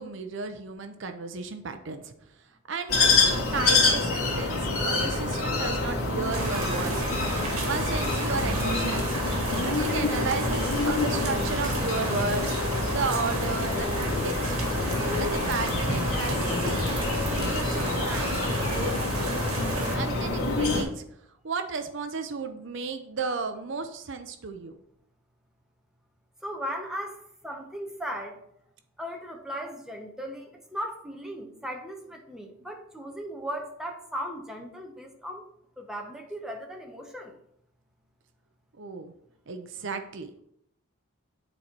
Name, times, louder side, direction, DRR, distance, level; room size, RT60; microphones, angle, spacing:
voice 1, 0.0-2.1 2.7-4.6 4.8-7.0 7.7-9.2 9.6-12.6 12.9-14.6 15.2-19.0 19.9-21.0 21.4-24.8 38.8-39.1 39.5-40.3, right 4 dB, 55° right, 8 dB, 0.6 m, -34 dB
sound 1, 2.9-20.8, left 3 dB, 80° left, 2.3 m, -27 dB
sound 2, 6.3-20.0, right 2 dB, 75° right, 1.8 m, -32 dB
voice 2, 26.4-27.2 27.4-28.4 29.0-35.4 35.8-37.3, equal, ahead, 1 dB, 0.8 m, -37 dB
9.0 x 4.2 x 4.5 m, 0.73 s
head